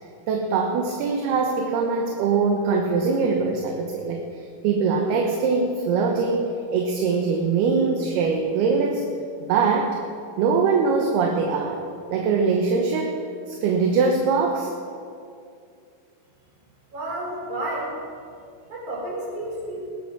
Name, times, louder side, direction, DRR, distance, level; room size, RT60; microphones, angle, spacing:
voice 1, 0.3-9.1 9.5-10.0 10.4-11.8 12.1-14.7, right 4 dB, 75° right, 3 dB, 2.8 m, -22 dB
voice 2, 16.9-18.0 18.7-19.8, right 1 dB, 45° right, -4 dB, 5.5 m, -31 dB
19.5 x 10.5 x 5.9 m, 2.4 s
omnidirectional pair, 5.1 m